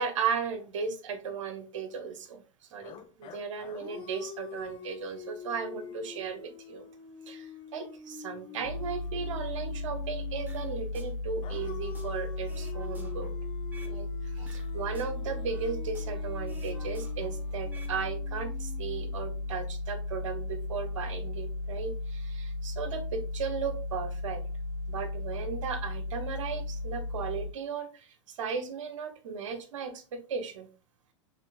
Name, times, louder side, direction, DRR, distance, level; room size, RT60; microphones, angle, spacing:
voice 1, 0.0-2.4 2.7-6.8 7.3-13.3 13.8-24.4 24.9-30.7, right 6 dB, 75° right, 8 dB, 1.1 m, -36 dB
sound 1, 2.8-10.9 11.4-19.5, left 6 dB, 30° left, 0.7 m, -46 dB
sound 2, 8.6-27.5, left 2 dB, 70° left, 1.8 m, -35 dB
sound 3, 10.5-11.1 11.5-14.0 14.4-16.2 16.5-18.0 18.2-18.5, right 2 dB, 10° right, 1.1 m, -53 dB
6.4 x 3.4 x 2.4 m, 0.38 s
hypercardioid pair, 100°, 16 cm